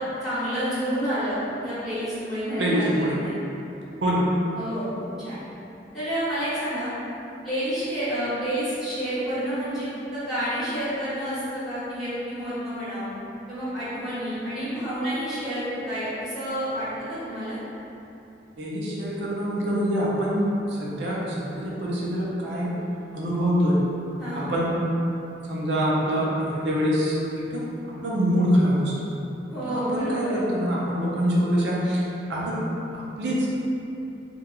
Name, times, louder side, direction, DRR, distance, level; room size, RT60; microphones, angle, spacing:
voice 1, 0.0-2.9 3.2-3.3 4.5-5.4 5.9-6.9 7.4-9.9 10.1-13.1 13.5-17.6 24.2-24.5 29.5-30.4, equal, ahead, -14 dB, 1.0 m, -29 dB
voice 2, 2.6-3.2 4.0-4.2 18.6-22.8 23.1-23.8 24.3-24.9 25.5-27.6 28.0-29.1 29.6-32.0 32.3-32.7 32.9-33.5, equal, 70° right, -6 dB, 0.6 m, -25 dB
2.9 x 2.3 x 2.3 m, 2.9 s
head